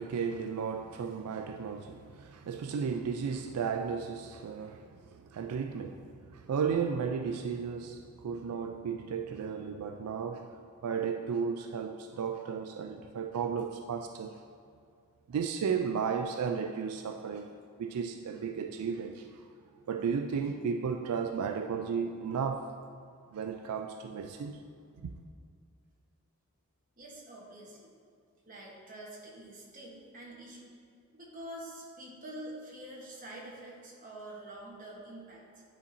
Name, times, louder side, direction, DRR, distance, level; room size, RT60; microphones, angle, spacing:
voice 1, 0.0-10.5 10.8-14.3 15.3-17.5 17.8-19.3 19.9-22.7 23.3-24.6 25.0-25.1, right 6 dB, 85° right, 5 dB, 0.3 m, -34 dB
voice 2, 27.0-27.9 28.5-30.7 31.1-35.6, right 1 dB, 40° right, -3 dB, 1.2 m, -46 dB
9.6 x 4.2 x 2.7 m, 2.3 s
head